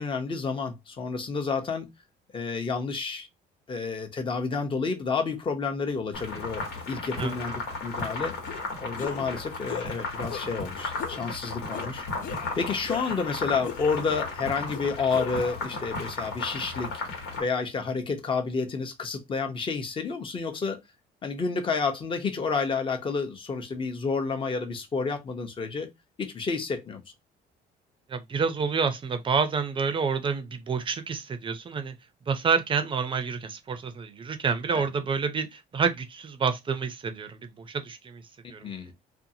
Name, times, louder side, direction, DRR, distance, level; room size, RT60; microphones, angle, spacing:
voice 1, 0.0-1.9 2.3-3.3 3.7-8.3 8.8-12.0 12.6-16.9 17.4-20.8 21.2-25.9 26.2-27.0 34.7-34.8 38.6-38.9, left 4 dB, 30° left, 0.8 m, -30 dB
sound 1, 6.1-17.4, left 3 dB, 85° left, 1.3 m, -35 dB
sound 2, 8.5-8.6 9.0-9.3 9.7-9.9 10.3-10.7 11.0-11.3 11.7-11.9 12.2-13.3 13.6-14.3 14.7-15.7, left 8 dB, 55° left, 0.4 m, -38 dB
voice 2, 28.1-31.9 32.3-38.2 38.5-38.7, right 5 dB, 30° right, 0.5 m, -28 dB
2.6 x 2.4 x 2.7 m
cardioid pair, 110°, 17 cm